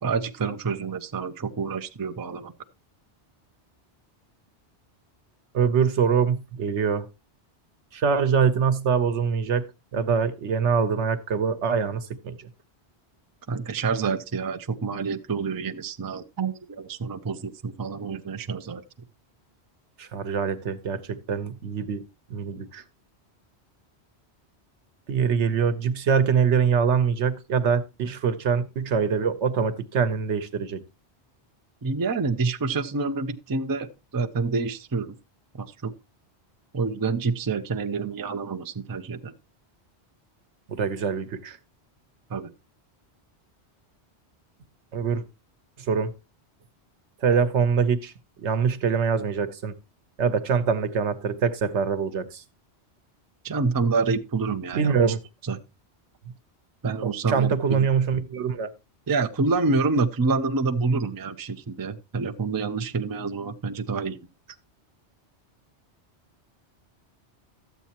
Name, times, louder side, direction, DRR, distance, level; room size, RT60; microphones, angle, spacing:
voice 1, 0.0-2.5 13.5-18.8 31.8-33.9 34.1-35.2 35.5-35.9 36.7-39.3 42.3-42.5 53.4-55.0 55.4-55.6 56.8-57.9 59.1-64.2, right 4 dB, 30° right, 0.4 m, -27 dB
voice 2, 5.5-7.1 7.9-9.6 9.9-12.5 20.0-22.0 22.3-22.8 25.1-30.8 40.7-41.6 44.9-45.2 45.8-46.1 47.2-48.1 48.4-49.7 50.2-52.4 54.7-55.2 57.0-58.7, right 6 dB, 85° right, 1.2 m, -24 dB
12.5 x 8.2 x 2.9 m
omnidirectional pair, 1.2 m